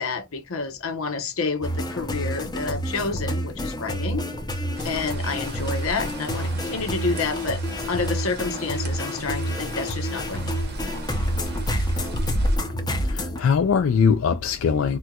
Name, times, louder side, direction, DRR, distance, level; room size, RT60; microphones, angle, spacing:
voice 1, 0.0-4.3 4.8-7.6 7.9-10.6, left 4 dB, 90° left, 0.9 m, -29 dB
sound 1, 1.6-13.4, equal, 20° left, 0.7 m, -28 dB
sound 2, 4.8-12.6, right 1 dB, 50° right, 0.8 m, -34 dB
voice 2, 12.7-15.0, left 6 dB, 70° left, 0.4 m, -22 dB
4.3 x 2.2 x 2.3 m
head